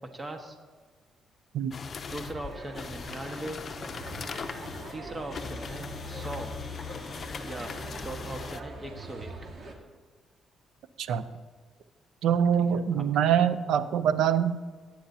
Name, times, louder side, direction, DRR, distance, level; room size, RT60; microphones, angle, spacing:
voice 1, 0.1-0.6 2.1-3.6 4.9-6.5 7.4-7.7 8.0-9.3 12.7-13.0, right 1 dB, 25° right, 4 dB, 1.5 m, -39 dB
sound 1, 1.7-8.6, left 5 dB, 45° left, 0.7 m, -40 dB
sound 2, 2.1-9.7, right 1 dB, 45° right, 2.0 m, -42 dB
voice 2, 12.2-14.6, right 8 dB, 80° right, 13 dB, 0.6 m, -24 dB
18.0 x 9.3 x 2.8 m, 1.4 s
cardioid pair, 90°, 0 cm